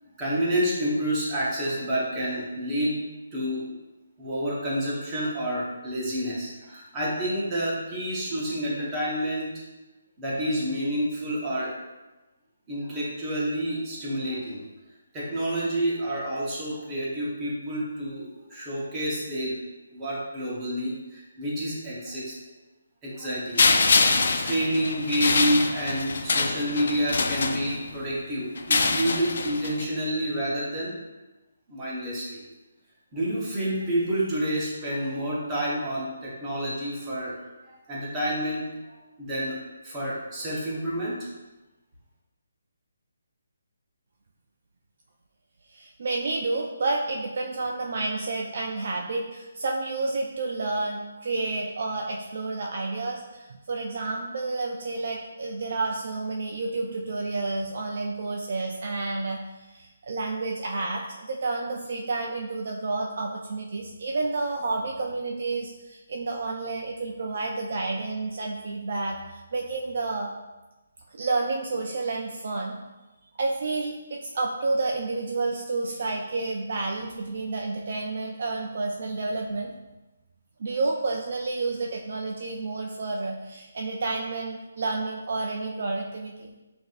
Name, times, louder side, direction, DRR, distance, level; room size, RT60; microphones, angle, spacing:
voice 1, 0.2-3.0 3.3-3.7 4.2-9.5 10.2-11.8 12.7-14.6 15.1-19.6 19.9-22.3 23.0-23.7 24.3-30.9 31.7-32.4 33.1-37.4 37.7-38.7 39.2-39.6 39.8-41.2, equal, 10° right, -7 dB, 0.8 m, -29 dB
sound 1, 23.6-28.0 28.6-29.8, left 4 dB, 50° left, 0.3 m, -24 dB
voice 2, 45.7-70.3 71.1-72.8 73.4-79.7 80.6-86.5, right 3 dB, 45° right, 0 dB, 0.4 m, -30 dB
5.9 x 2.6 x 2.4 m, 1.1 s
hypercardioid pair, 175°, 0 cm